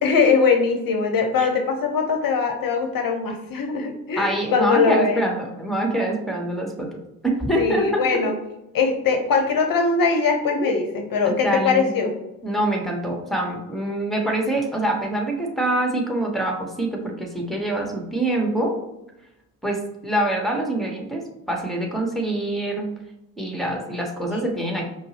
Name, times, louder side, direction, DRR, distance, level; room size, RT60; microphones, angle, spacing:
voice 1, 0.0-5.2 7.6-8.3 8.7-12.1 24.3-24.4, left 5 dB, 45° left, 5 dB, 0.8 m, -21 dB
voice 2, 4.2-6.9 7.2-8.3 10.5-10.7 11.4-11.9 12.4-18.8 19.6-22.9 23.4-24.8, right 1 dB, ahead, 1 dB, 1.0 m, -25 dB
5.1 x 2.0 x 2.9 m, 0.90 s
hypercardioid pair, 50°, 49 cm